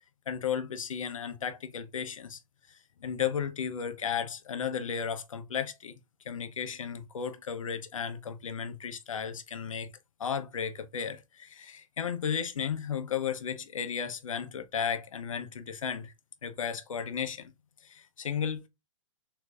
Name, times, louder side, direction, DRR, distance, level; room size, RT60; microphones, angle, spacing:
voice 1, 0.3-2.4 3.0-6.0 6.2-9.9 10.2-16.1 16.4-17.5 17.8-18.7, left 7 dB, 70° left, 0.9 m, -34 dB
6.9 x 3.0 x 2.5 m
figure-of-eight pair, 115°, 17 cm